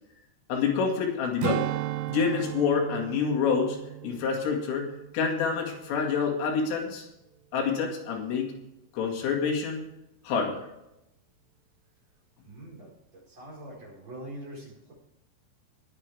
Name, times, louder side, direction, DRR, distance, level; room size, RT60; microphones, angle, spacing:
voice 1, 0.5-1.8 2.1-3.8 4.0-4.9 5.1-7.1 7.5-8.5 8.9-9.8 10.2-10.7, left 5 dB, 75° left, 1 dB, 4.7 m, -27 dB
Strum, 1.4-6.1 6.5-6.7, right 16 dB, 85° right, 2.9 m, -35 dB
voice 2, 12.4-14.9, right 1 dB, 30° right, -5 dB, 5.4 m, -44 dB
20.5 x 8.9 x 3.5 m, 0.87 s
omnidirectional pair, 6.0 m